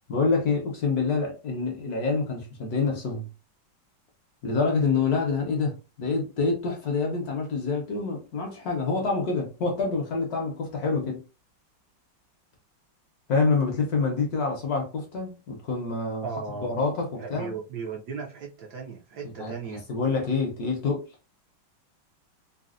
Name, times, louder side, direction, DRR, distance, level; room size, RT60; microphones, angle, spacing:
voice 1, 0.1-3.3 4.4-11.2 13.3-16.3 16.6-17.5 19.4-19.5 19.9-21.0, left 4 dB, 60° left, 1.1 m, -26 dB
voice 2, 16.2-16.8 17.1-19.8, right 5 dB, 70° right, 1.0 m, -36 dB
4.0 x 2.1 x 2.4 m
omnidirectional pair, 2.1 m